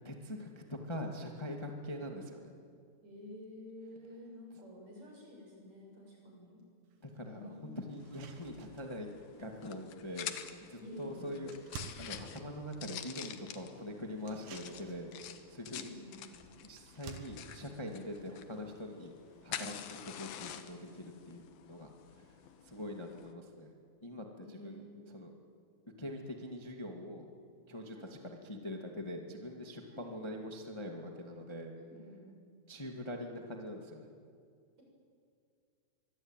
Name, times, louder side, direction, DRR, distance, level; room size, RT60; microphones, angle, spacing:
voice 1, 0.0-2.5 7.0-9.1 9.4-11.5 12.0-15.9 16.6-19.1 19.4-22.4 22.6-23.7 24.0-24.8 25.1-25.3 26.0-27.3 27.7-31.7 32.7-34.1, left 1 dB, 45° left, 2 dB, 0.3 m, -43 dB
voice 2, 3.0-6.6 7.1-7.8 10.7-11.6 15.7-16.2 24.4-25.1 27.9-28.1 29.9-30.1 31.8-32.4, left 1 dB, 40° right, -1 dB, 7.7 m, -51 dB
sound 1, 6.9-7.0 7.5-7.6 7.9-19.6, right 5 dB, 60° right, 3.2 m, -54 dB
sound 2, 8.0-23.3, left 10 dB, 65° left, 2.8 m, -48 dB
24.0 x 23.5 x 9.1 m, 2.3 s
omnidirectional pair, 4.9 m